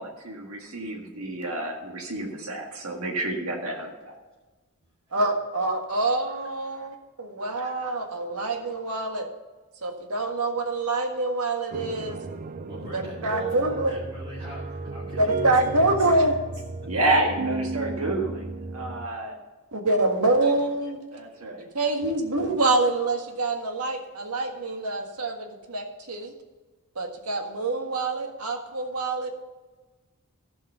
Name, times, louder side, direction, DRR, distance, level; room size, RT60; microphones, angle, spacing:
voice 1, 0.0-4.1 16.9-18.5 18.7-19.4 21.1-21.7, right 2 dB, 70° right, 1 dB, 1.8 m, -29 dB
voice 2, 5.1-9.3 9.8-12.2 12.9-14.0 15.0-16.3 19.7-21.0 21.7-26.3 26.9-29.3, right 2 dB, 85° right, 3 dB, 1.7 m, -26 dB
sound 1, 11.7-19.1, right 3 dB, 40° right, 0.4 m, -34 dB
voice 3, 12.7-16.3 16.8-16.9, right 1 dB, 20° right, -6 dB, 2.3 m, -41 dB
15.0 x 5.6 x 5.6 m, 1.2 s
head